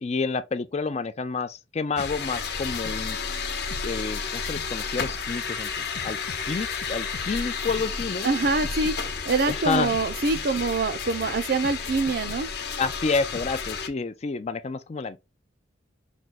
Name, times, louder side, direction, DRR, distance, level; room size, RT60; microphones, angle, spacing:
voice 1, 0.0-3.2 3.8-6.2 6.5-8.3 9.5-9.9 12.8-15.2, left 4 dB, 35° left, 0.4 m, -29 dB
alger-drums, 2.0-13.7, left 5 dB, 85° left, 0.7 m, -43 dB
Roomba Bumping Things, 2.0-13.9, left 5 dB, 55° left, 0.9 m, -32 dB
voice 2, 8.2-8.9 9.2-12.5, right 3 dB, 55° right, 0.5 m, -25 dB
6.0 x 2.2 x 3.9 m
head